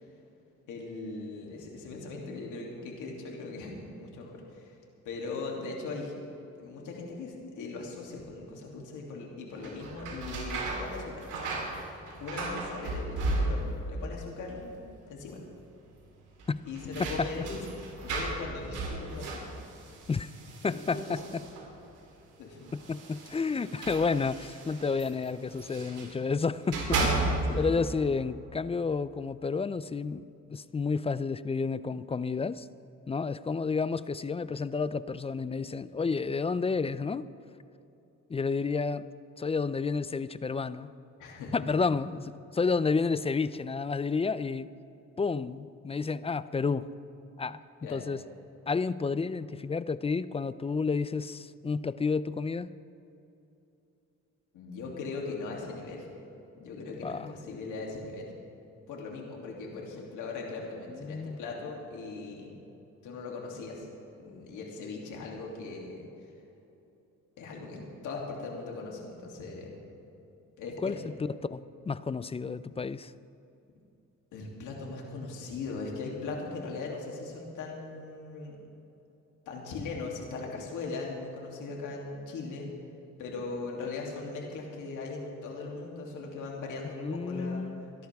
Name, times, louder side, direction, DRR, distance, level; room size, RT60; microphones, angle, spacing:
voice 1, 0.7-4.7 5.0-6.1 6.6-11.2 12.2-14.8 15.1-15.4 16.6-17.6 18.0-19.4 20.6-21.0 22.4-22.6 27.5-27.7 41.2-41.5 47.8-48.1 54.5-56.1 56.6-58.3 58.9-62.5 63.0-63.9 64.2-66.1 67.4-69.7 70.6-71.0 74.3-78.6 79.5-82.7 83.2-87.7 88.0-88.1, left 3 dB, 85° left, -1 dB, 2.8 m, -39 dB
sound 1, 9.5-13.9 14.2-14.9 15.2-15.3 16.4-21.8 22.7-26.2 26.5-27.7, right 2 dB, 80° right, 3.7 m, -35 dB
voice 2, 20.6-21.2 22.7-27.2 27.5-32.7 33.1-37.3 38.3-39.1 39.4-40.9 41.5-44.7 45.2-46.9 47.4-47.6 47.9-48.2 48.7-52.7 57.0-57.3 60.9-61.4 70.8-71.0 71.4-73.1 86.8-87.9, left 4 dB, 20° left, 16 dB, 0.4 m, -31 dB
27.0 x 11.5 x 3.5 m, 2.8 s
cardioid pair, 90°, 30 cm